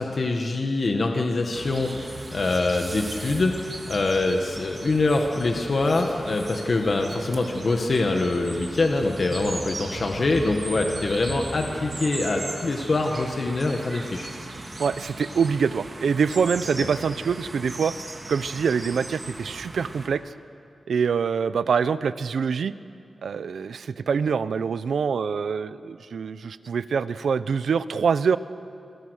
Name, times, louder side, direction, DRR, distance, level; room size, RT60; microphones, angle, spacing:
voice 1, 0.0-14.3, left 2 dB, 50° left, 3 dB, 1.7 m, -24 dB
sound 1, 1.5-20.1, right 2 dB, 35° right, 3.0 m, -37 dB
voice 2, 14.8-17.9 18.3-20.2 20.9-22.7 23.2-28.4, right 6 dB, 90° right, 14 dB, 0.7 m, -25 dB
28.0 x 23.0 x 6.5 m, 2.5 s
wide cardioid pair, 125°, 0 cm